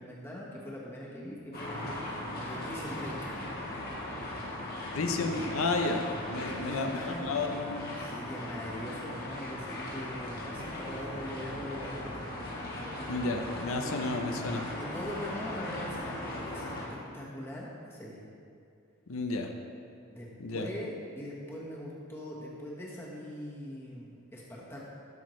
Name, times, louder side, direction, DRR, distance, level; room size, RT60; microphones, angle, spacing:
voice 1, 0.0-3.1 6.4-7.3 8.0-12.3 13.7-16.7 17.1-18.2 20.1-24.8, equal, 10° left, -5 dB, 1.3 m, -42 dB
sound 1, 1.5-16.9, left 1 dB, 45° left, 1.5 m, -38 dB
voice 2, 4.9-6.0 6.3-8.0 13.1-14.6 19.1-19.5 20.4-20.7, left 3 dB, 75° left, 4 dB, 0.7 m, -32 dB
12.0 x 6.3 x 3.2 m, 2.5 s
head